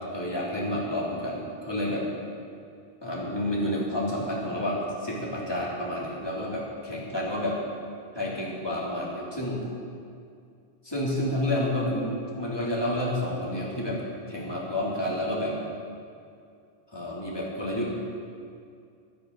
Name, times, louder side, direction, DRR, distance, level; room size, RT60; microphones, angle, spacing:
voice 1, 0.1-2.1 3.0-7.6 8.1-9.7 10.8-15.6 16.9-17.9, left 1 dB, 20° left, -5 dB, 3.1 m, -30 dB
23.5 x 9.4 x 4.0 m, 2.4 s
omnidirectional pair, 1.1 m